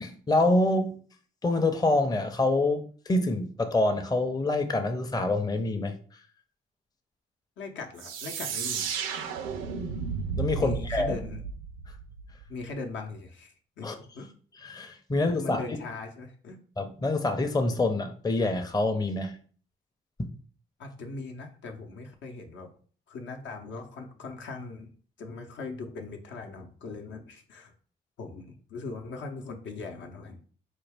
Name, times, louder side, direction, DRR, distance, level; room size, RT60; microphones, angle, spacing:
voice 1, 0.0-1.0 1.4-6.0 10.4-11.1 13.8-13.9 14.6-15.6 16.8-19.3 20.2-20.3, left 2 dB, 20° left, 0.6 m, -26 dB
voice 2, 7.6-9.0 10.6-11.4 12.5-14.3 15.4-16.6 20.8-22.7 23.1-24.9 25.2-27.7 28.2-30.4, left 3 dB, 70° left, 0.7 m, -40 dB
sound 1, 8.0-12.6, right 6 dB, 90° right, 0.5 m, -33 dB
4.0 x 2.3 x 3.4 m
supercardioid pair, 65°, 20 cm